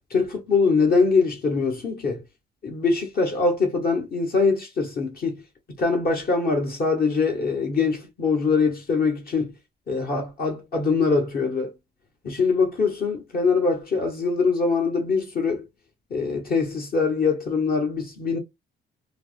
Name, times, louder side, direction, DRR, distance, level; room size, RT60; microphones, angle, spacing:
voice 1, 0.1-2.2 2.6-5.4 5.8-9.5 9.9-11.7 12.2-15.6 16.1-18.4, left 4 dB, 50° left, 1.0 m, -23 dB
3.3 x 2.1 x 2.4 m
cardioid pair, 90°, 20 cm